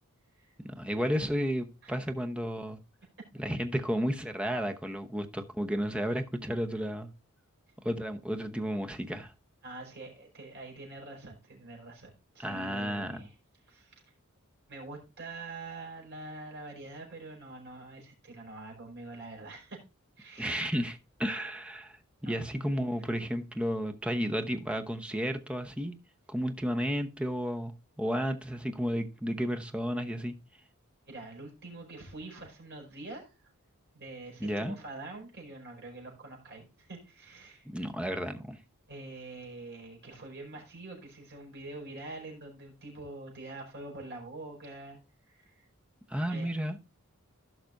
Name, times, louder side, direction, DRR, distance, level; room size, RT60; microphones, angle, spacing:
voice 1, 0.6-2.8 3.4-7.1 7.8-9.3 12.4-13.3 20.4-26.0 26.3-30.3 34.4-34.7 37.7-38.6 46.1-46.8, equal, 5° right, 0.9 m, -32 dB
voice 2, 9.6-13.3 13.6-14.0 14.7-19.8 20.2-20.7 22.2-22.4 31.1-33.3 33.9-37.7 38.9-45.0 45.2-45.7 46.3-46.5, right 2 dB, 55° right, 4.8 m, -45 dB
16.5 x 5.9 x 2.6 m
head